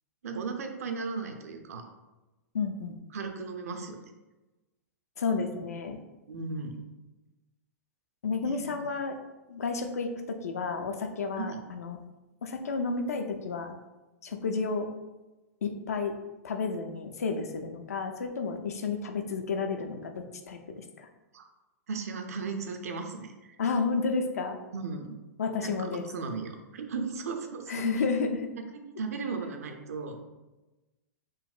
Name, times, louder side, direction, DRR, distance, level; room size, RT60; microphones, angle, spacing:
voice 1, 0.2-1.9 3.1-4.0 6.3-6.8 8.4-8.7 11.4-11.6 21.3-21.5 21.9-23.6 24.7-25.2 25.6-27.9 28.7-30.2, right 4 dB, 70° right, 5 dB, 0.4 m, -36 dB
voice 2, 2.5-3.0 5.2-6.0 8.2-9.2 9.5-12.0 12.4-13.8 14.2-14.9 15.6-16.1 16.4-21.1 23.6-24.6 25.4-26.0 27.7-28.5, left 4 dB, 75° left, 5 dB, 0.4 m, -31 dB
3.8 x 2.1 x 2.4 m, 1.1 s
figure-of-eight pair, 105°, 8 cm